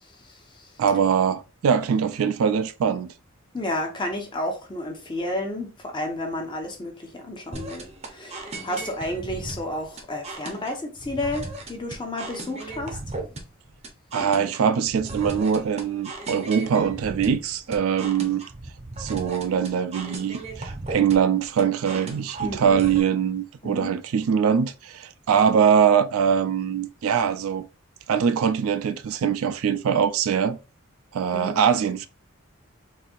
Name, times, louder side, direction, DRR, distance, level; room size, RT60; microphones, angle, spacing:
voice 1, 0.2-0.7 3.5-13.0 22.4-22.8 23.6-23.9 31.3-31.6, left 1 dB, 20° left, 0.7 m, -31 dB
voice 2, 0.8-3.1 14.1-18.4 19.0-27.7 28.1-30.6 31.1-32.1, right 7 dB, 75° right, 0.3 m, -22 dB
sound 1, 7.5-23.0, right 2 dB, 30° right, 0.6 m, -37 dB
4.0 x 2.6 x 2.4 m
head